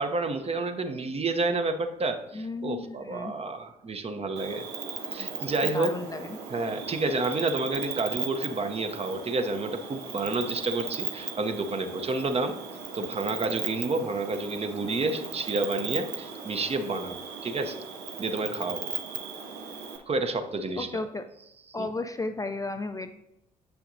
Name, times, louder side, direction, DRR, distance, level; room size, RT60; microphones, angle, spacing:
voice 1, 0.0-4.7 5.1-6.0 6.5-12.6 12.9-17.8 18.2-18.9 20.1-21.0 21.8-21.9, right 3 dB, 30° right, 7 dB, 0.7 m, -30 dB
voice 2, 2.3-3.3 5.6-6.4 20.8-21.3 21.7-23.2, left 3 dB, 15° left, 7 dB, 0.4 m, -34 dB
Cricket, 4.4-20.0, right 6 dB, 80° right, 0.7 m, -37 dB
7.7 x 5.8 x 2.6 m, 0.85 s
hypercardioid pair, 50°, 20 cm